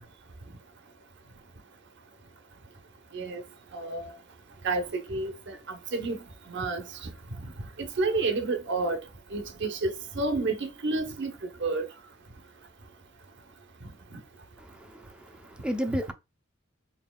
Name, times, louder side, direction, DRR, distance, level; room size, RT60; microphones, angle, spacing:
voice 1, 3.7-4.1 4.6-6.2 6.5-6.8 7.8-9.0 9.3-11.3 11.6-11.9 14.1-14.2 15.9-16.0, right 3 dB, 60° right, 0.9 m, -30 dB
voice 2, 14.6-16.1, equal, 5° right, 0.6 m, -33 dB
4.2 x 3.9 x 2.3 m
head